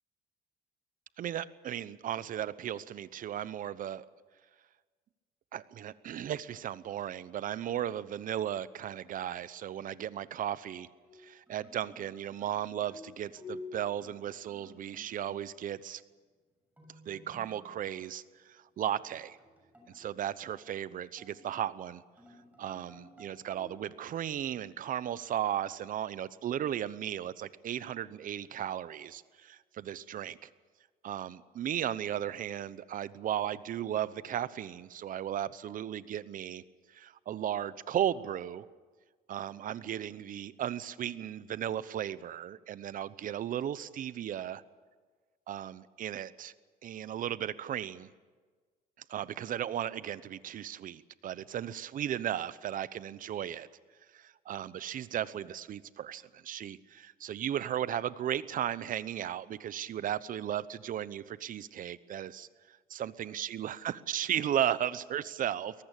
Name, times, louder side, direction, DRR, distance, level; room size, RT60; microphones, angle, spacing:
voice 1, 1.2-4.1 5.5-10.9 11.2-16.0 17.1-19.4 19.9-22.0 22.6-30.5 31.0-36.6 36.9-38.6 39.3-44.6 45.5-46.5 46.8-48.1 49.1-53.7 54.1-65.7, right 10 dB, 55° right, 17 dB, 0.9 m, -35 dB
sound 1, 11.0-15.8 16.8-17.9 19.0-21.7 22.2-24.1, left 2 dB, 10° right, 7.1 m, -52 dB
23.5 x 19.0 x 8.3 m, 1.4 s
cardioid pair, 110°, 17 cm